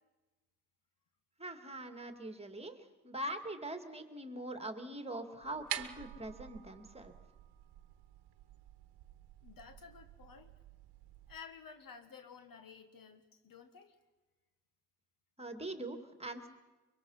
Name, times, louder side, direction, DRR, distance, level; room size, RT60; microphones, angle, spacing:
voice 1, 1.4-7.1 15.4-16.5, right 1 dB, 15° right, 8 dB, 2.4 m, -43 dB
sound 1, 5.4-11.4, right 12 dB, 70° right, 1.2 m, -48 dB
voice 2, 9.4-10.5 11.3-14.0, left 6 dB, 55° left, 8 dB, 1.8 m, -53 dB
24.0 x 23.0 x 5.7 m, 1.2 s
supercardioid pair, 55°, 41 cm